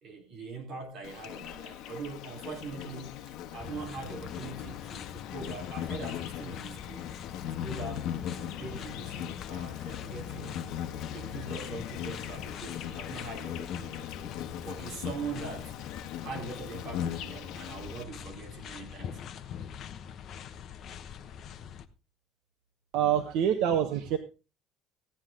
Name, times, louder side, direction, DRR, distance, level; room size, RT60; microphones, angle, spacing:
voice 1, 0.0-7.1 7.5-14.3 14.6-15.7 16.2-19.2, right 4 dB, 35° right, 4.0 m, -42 dB
Insect, 1.0-18.0, left 10 dB, 60° left, 1.3 m, -39 dB
sound 1, 3.6-21.9, left 8 dB, 40° left, 0.9 m, -44 dB
voice 2, 22.9-24.2, right 9 dB, 65° right, 1.2 m, -26 dB
15.5 x 10.0 x 3.8 m
cardioid pair, 170°, 0 cm